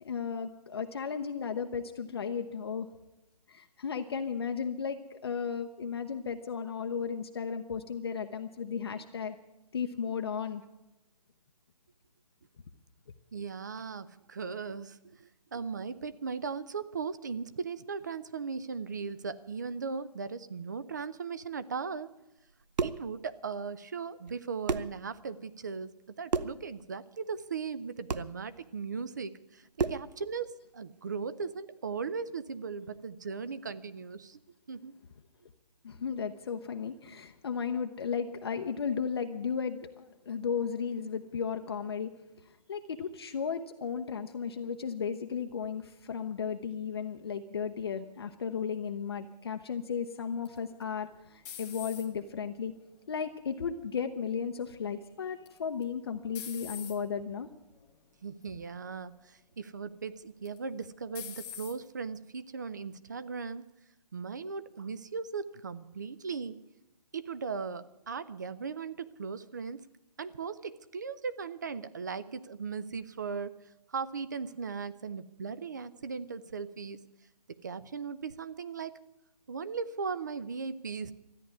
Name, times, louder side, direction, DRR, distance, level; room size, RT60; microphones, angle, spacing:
voice 1, 0.0-2.9 3.5-9.4 9.7-10.6 35.8-42.1 42.7-52.7 53.1-57.5, left 6 dB, 40° left, 5 dB, 0.7 m, -35 dB
voice 2, 13.3-22.1 22.8-34.4 34.7-34.9 58.2-63.6 64.1-66.6 67.1-69.9 70.2-73.5 73.9-77.0 77.5-79.0 79.5-81.1, right 5 dB, 25° right, 15 dB, 0.5 m, -38 dB
sound 1, 22.5-23.1 24.3-24.4 24.7-25.0 26.3-26.6 28.1-28.3 29.8-30.1, right 5 dB, 85° right, 0.8 m, -31 dB
sound 2, 50.4-52.4 52.9-53.4 55.4-55.8 56.3-57.0 57.8-58.0 58.4-58.5 60.4-60.8 61.1-61.8, left 9 dB, 10° left, 0.8 m, -44 dB
13.5 x 10.0 x 9.4 m, 0.94 s
hypercardioid pair, 170°, 21 cm